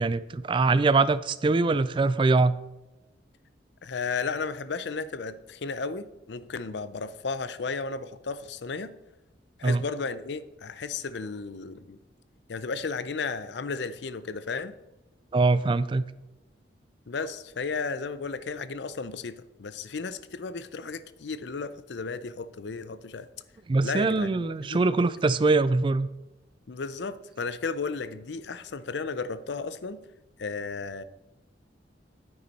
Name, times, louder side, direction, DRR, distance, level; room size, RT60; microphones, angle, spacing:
voice 1, 0.0-2.6 9.6-9.8 15.3-16.0 23.7-26.1, right 3 dB, 25° right, 16 dB, 0.3 m, -23 dB
voice 2, 3.8-8.9 9.6-12.0 12.5-14.8 17.1-23.3 23.8-24.8 26.7-30.0 30.4-31.0, left 4 dB, 70° left, 14 dB, 0.5 m, -34 dB
9.5 x 9.4 x 4.1 m, 1.0 s
head